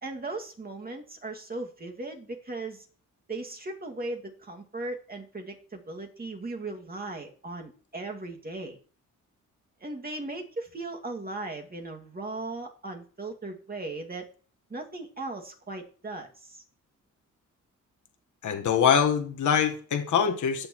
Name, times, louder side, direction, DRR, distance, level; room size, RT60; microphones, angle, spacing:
voice 1, 0.0-2.9 3.3-8.8 9.8-14.3 14.7-16.6, right 2 dB, 30° right, 2 dB, 2.2 m, -37 dB
voice 2, 18.4-20.7, left 7 dB, 65° left, 4 dB, 1.4 m, -24 dB
18.0 x 6.7 x 3.1 m, 0.40 s
cardioid pair, 70°, 32 cm